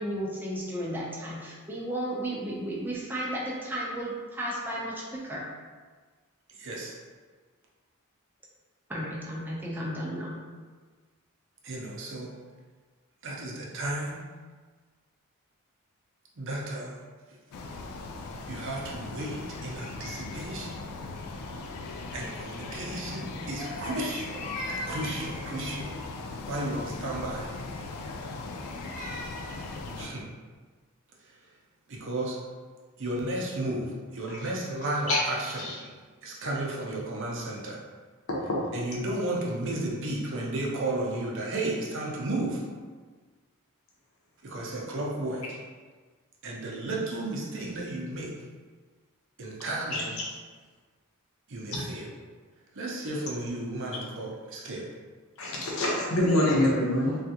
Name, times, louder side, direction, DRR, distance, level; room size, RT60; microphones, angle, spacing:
voice 1, 0.0-5.4 8.9-10.4, right 1 dB, 10° right, -5 dB, 0.6 m, -33 dB
voice 2, 6.5-6.9 11.6-12.3 13.2-14.3 16.4-17.0 18.5-20.9 21.9-24.5 24.8-26.0 26.4-27.5 30.0-30.3 31.2-31.4 31.9-32.4 33.0-35.7 36.2-37.8 38.7-42.6 44.4-45.4 46.4-48.3 49.4-50.2 51.5-52.1 52.7-54.9, right 1 dB, 60° right, -2 dB, 0.6 m, -33 dB
sound 1, 17.5-30.1, left 3 dB, 90° left, 0.3 m, -39 dB
Crying sobbing, 23.6-26.1 28.3-29.7, equal, 40° left, 0.8 m, -40 dB
voice 3, 38.3-38.6 49.9-50.0 55.4-57.2, left 1 dB, 65° left, -4 dB, 0.8 m, -25 dB
3.5 x 2.4 x 2.8 m, 1.4 s
head